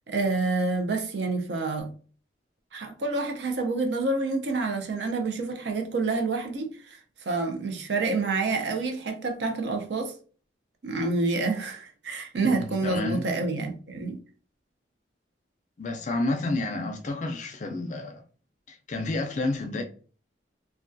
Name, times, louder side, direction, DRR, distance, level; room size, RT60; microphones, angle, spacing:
voice 1, 0.1-1.9 2.7-7.0 7.2-10.1 10.8-14.2, right 3 dB, 65° right, 0.5 m, -28 dB
voice 2, 12.4-13.2 15.8-18.2 18.7-19.8, left 2 dB, 40° left, 0.4 m, -30 dB
2.2 x 2.2 x 2.5 m
head